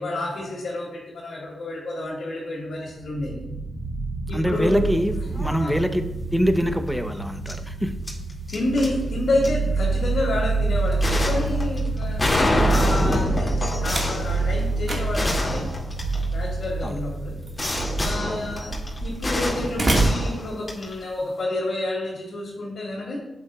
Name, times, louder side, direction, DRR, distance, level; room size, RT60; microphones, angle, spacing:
voice 1, 0.0-3.4 4.3-4.9 5.6-5.8 8.5-15.8 16.3-17.7 18.0-23.2, left 2 dB, 70° left, -7 dB, 2.6 m, -29 dB
sound 1, 2.8-20.2, right 3 dB, 80° right, 1.2 m, -28 dB
voice 2, 4.3-6.0 6.3-8.0 16.8-17.0 18.2-18.5, equal, ahead, 8 dB, 0.9 m, -24 dB
sound 2, 4.8-5.0 5.3-5.7 7.5-7.6 8.1-8.9 9.4-9.5 11.0-16.6 17.6-21.0, left 1 dB, 30° left, 2.5 m, -27 dB
Slam, 10.4-21.2, right 2 dB, 40° right, 1.9 m, -32 dB
11.0 x 7.8 x 2.5 m, 0.97 s
supercardioid pair, 45°, 0 cm